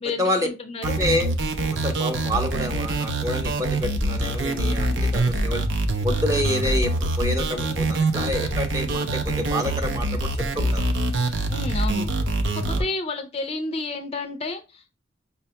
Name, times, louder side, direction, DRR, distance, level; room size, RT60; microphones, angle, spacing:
voice 1, 0.0-1.0 11.5-12.1 12.6-14.9, left 3 dB, 30° left, 7 dB, 0.4 m, -31 dB
voice 2, 0.8-1.3 1.7-5.6 6.0-10.9 12.7-12.8, left 1 dB, 15° right, 5 dB, 0.6 m, -28 dB
sound 1, 0.8-12.8, right 2 dB, 75° right, 0.6 m, -25 dB
5.4 x 2.2 x 2.8 m, 0.29 s
head